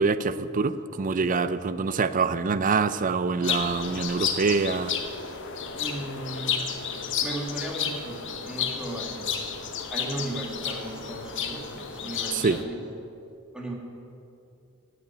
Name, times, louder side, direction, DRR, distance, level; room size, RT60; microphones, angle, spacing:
voice 1, 0.0-4.9 12.3-12.6, right 4 dB, 40° right, 14 dB, 0.4 m, -25 dB
sound 1, 3.4-12.6, left 7 dB, 60° left, 1.0 m, -32 dB
voice 2, 5.8-6.7 7.2-9.3 9.9-12.8 13.5-13.7, right 1 dB, 5° right, -1 dB, 1.8 m, -36 dB
9.4 x 8.5 x 9.6 m, 2.6 s
head